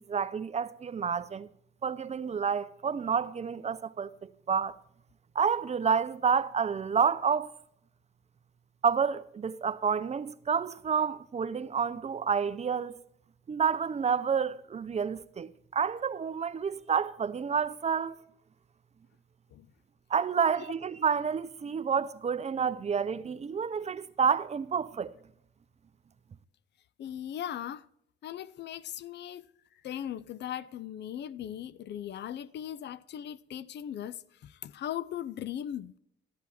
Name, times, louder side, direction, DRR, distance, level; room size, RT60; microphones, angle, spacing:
voice 1, 0.1-1.5 1.8-4.8 5.4-7.5 8.8-13.0 13.5-18.2 20.1-25.1, right 6 dB, 35° right, 0.6 m, -29 dB
voice 2, 27.0-27.9 28.2-29.5 29.8-36.0, left 10 dB, 60° left, 0.5 m, -39 dB
12.0 x 8.3 x 4.2 m
cardioid pair, 90°, 20 cm